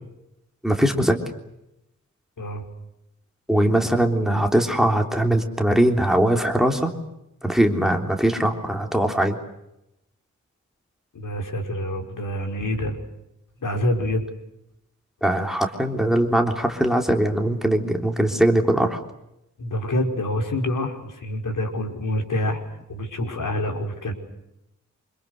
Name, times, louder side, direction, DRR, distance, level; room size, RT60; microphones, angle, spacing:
voice 1, 0.6-1.2 3.5-6.9 7.4-9.4 15.2-19.0, right 1 dB, ahead, 4 dB, 3.5 m, -21 dB
voice 2, 11.1-13.0 13.6-14.2 19.6-22.6 22.9-24.1, left 1 dB, 85° left, 3 dB, 5.5 m, -26 dB
28.0 x 27.0 x 6.7 m, 0.86 s
wide cardioid pair, 135°, 31 cm